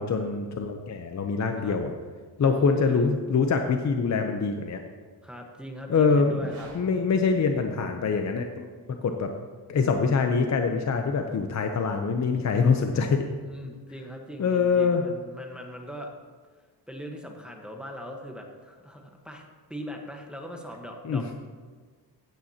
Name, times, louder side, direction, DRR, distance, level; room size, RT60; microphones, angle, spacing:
voice 1, 0.0-1.9 2.4-4.8 5.9-6.4 6.7-8.7 9.0-9.3 9.7-13.2 14.4-15.0 21.0-21.3, left 5 dB, 45° left, 5 dB, 0.7 m, -24 dB
voice 2, 2.4-3.1 5.2-6.7 13.4-16.1 16.9-19.4 19.7-21.3, equal, ahead, 1 dB, 1.2 m, -40 dB
sound 1, 6.2-8.3, right 2 dB, 75° right, 3.6 m, -49 dB
15.5 x 9.3 x 2.9 m, 1.5 s
wide cardioid pair, 125°, 41 cm